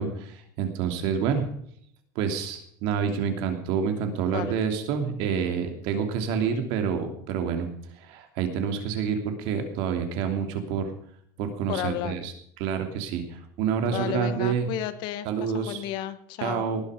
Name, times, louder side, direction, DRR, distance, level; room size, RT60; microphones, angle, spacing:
voice 1, 0.0-1.5 2.1-7.7 8.0-10.9 11.4-12.3 12.6-14.7 15.2-15.8 16.4-16.8, right 7 dB, 55° right, 6 dB, 3.0 m, -28 dB
voice 2, 11.7-12.2 13.8-16.6, left 12 dB, 50° left, 12 dB, 1.3 m, -33 dB
19.0 x 10.5 x 5.1 m, 0.68 s
supercardioid pair, 155°, 10 cm